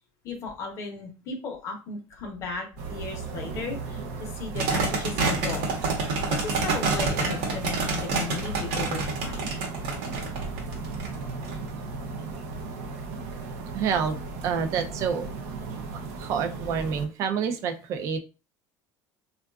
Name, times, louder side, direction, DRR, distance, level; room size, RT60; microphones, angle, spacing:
voice 1, 0.2-5.7 6.3-9.5, left 4 dB, 35° left, 2 dB, 0.7 m, -36 dB
sound 1, 2.8-17.1, right 3 dB, 85° right, 0.6 m, -36 dB
sound 2, 4.6-11.5, right 3 dB, 70° right, 0.9 m, -27 dB
voice 2, 13.7-15.3 15.9-18.2, right 6 dB, 40° right, 7 dB, 0.4 m, -28 dB
3.6 x 2.3 x 2.3 m, 0.32 s
cardioid pair, 170°, 8 cm